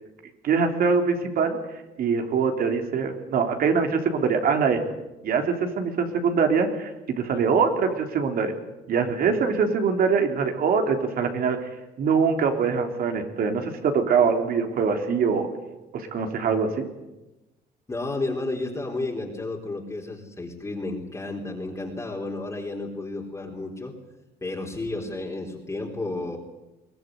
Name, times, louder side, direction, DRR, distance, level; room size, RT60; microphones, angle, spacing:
voice 1, 0.4-1.6 2.0-4.8 5.2-8.5 8.9-11.6 12.0-15.5 15.9-16.9, right 5 dB, 60° right, 5 dB, 3.7 m, -23 dB
voice 2, 17.9-23.9 24.4-26.4, left 2 dB, 15° left, -1 dB, 3.9 m, -32 dB
23.0 x 18.0 x 9.5 m, 0.99 s
cardioid pair, 110°, 17 cm